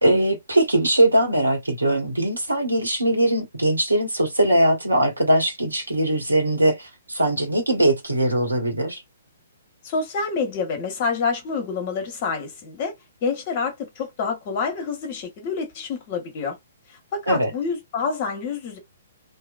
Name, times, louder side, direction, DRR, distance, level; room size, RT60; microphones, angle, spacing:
voice 1, 0.0-9.0 17.3-17.5, right 1 dB, 80° right, 1.4 m, -21 dB
voice 2, 9.8-12.9 13.2-16.6 16.9-18.8, left 5 dB, 35° left, 1.4 m, -27 dB
3.0 x 3.0 x 2.5 m
figure-of-eight pair, 125°, 0 cm